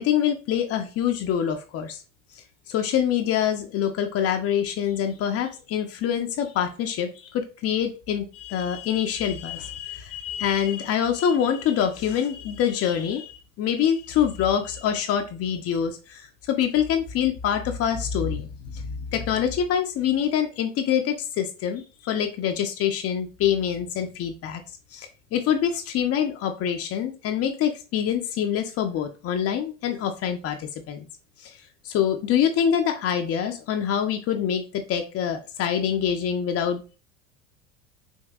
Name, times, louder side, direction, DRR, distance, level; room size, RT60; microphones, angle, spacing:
voice 1, 0.0-2.0 2.7-24.6 24.9-31.1 31.4-31.5 31.8-37.0, left 9 dB, 40° left, 5 dB, 0.7 m, -25 dB
5.4 x 2.6 x 2.4 m, 0.33 s
hypercardioid pair, 85°, 37 cm